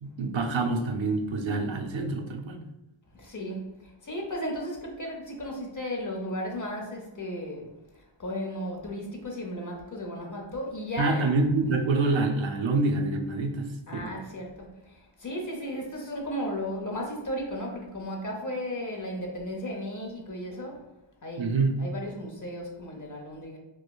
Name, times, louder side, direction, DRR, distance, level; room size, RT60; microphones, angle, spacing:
voice 1, 0.0-2.6 11.0-14.1 21.4-21.7, right 3 dB, 70° right, 3 dB, 0.5 m, -26 dB
voice 2, 3.1-11.3 13.9-20.8 21.2-23.6, equal, 40° left, 0 dB, 0.8 m, -35 dB
4.6 x 2.0 x 2.3 m, 0.97 s
wide cardioid pair, 75°, 48 cm